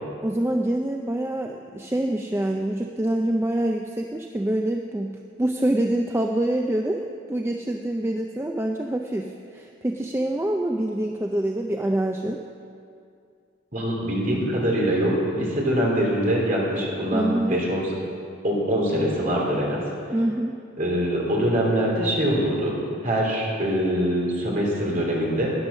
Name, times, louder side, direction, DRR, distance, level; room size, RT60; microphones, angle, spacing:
voice 1, 0.2-5.1 5.4-12.4 17.1-17.6 20.1-20.6, right 1 dB, 10° right, 2 dB, 0.4 m, -26 dB
voice 2, 13.7-17.8 18.4-19.8 20.8-22.7 23.0-25.5, equal, 40° right, -3 dB, 3.0 m, -23 dB
12.5 x 9.9 x 6.3 m, 2.4 s
head